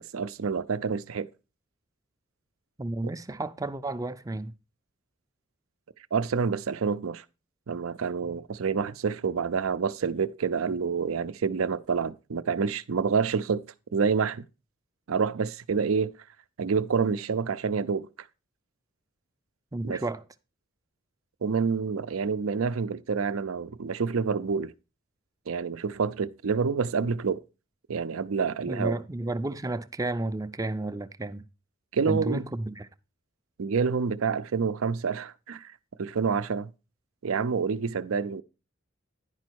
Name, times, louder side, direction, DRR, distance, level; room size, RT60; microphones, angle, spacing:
voice 1, 0.1-1.3 6.1-7.2 7.7-13.7 13.9-14.4 15.1-16.1 16.6-18.1 19.8-20.0 21.4-24.7 25.5-27.4 27.9-29.0 31.9-32.4 33.6-35.7 36.0-36.7 37.2-38.4, right 5 dB, 90° right, 0.5 m, -28 dB
voice 2, 2.8-4.5 19.7-20.2 28.7-31.5 32.1-32.9, right 2 dB, 15° right, 0.4 m, -32 dB
10.5 x 5.2 x 4.5 m
head